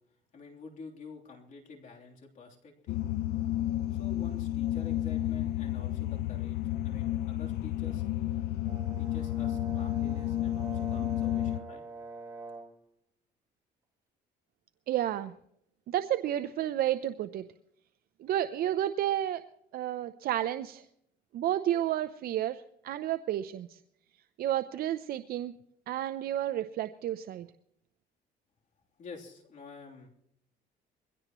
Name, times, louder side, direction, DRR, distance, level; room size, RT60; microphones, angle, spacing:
voice 1, 0.3-3.0 3.9-6.6 6.8-8.0 9.0-11.8 29.0-30.1, left 4 dB, 50° left, 0 dB, 3.3 m, -49 dB
sound 1, 2.9-11.6, left 13 dB, 75° left, 0.6 m, -31 dB
Brass instrument, 8.6-12.8, right 3 dB, 20° right, 2.9 m, -45 dB
voice 2, 14.9-15.3 15.9-17.4 18.2-19.4 19.7-20.8 21.3-23.8 24.4-25.6 25.9-27.5, right 12 dB, 65° right, 11 dB, 0.6 m, -31 dB
22.5 x 17.0 x 3.1 m, 0.73 s
cardioid pair, 110°, 17 cm